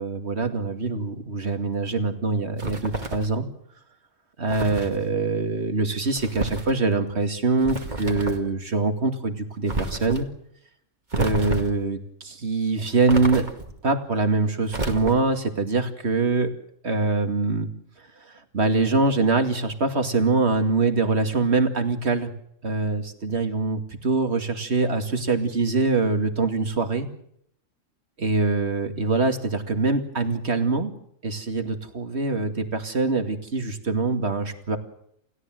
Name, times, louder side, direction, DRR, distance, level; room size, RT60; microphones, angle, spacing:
voice 1, 0.0-3.5 4.4-10.3 11.2-13.5 13.8-16.5 16.8-17.7 18.2-22.3 22.6-27.1 28.2-30.9 31.2-34.8, right 3 dB, 55° right, 7 dB, 2.6 m, -24 dB
sound 1, 2.6-3.4 4.5-5.0 6.1-6.7 7.6-8.5 9.7-10.2 11.1-11.8 13.1-13.8 14.7-15.4, right 2 dB, 35° right, 2.4 m, -30 dB
29.5 x 16.5 x 7.8 m, 0.71 s
omnidirectional pair, 1.3 m